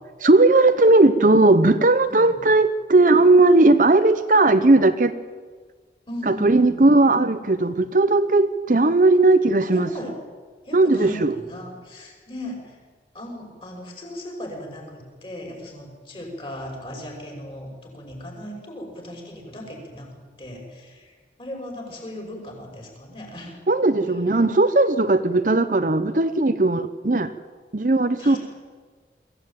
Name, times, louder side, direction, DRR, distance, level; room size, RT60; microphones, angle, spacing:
voice 1, 0.2-5.1 6.3-9.9 10.7-11.3 23.7-27.3 27.7-28.4, right 2 dB, 45° right, 10 dB, 0.8 m, -17 dB
voice 2, 2.1-2.4 6.1-6.9 9.7-10.3 10.6-12.8 13.1-23.6 28.2-28.4, equal, 30° left, 1 dB, 5.9 m, -37 dB
23.0 x 16.0 x 9.1 m, 1.5 s
head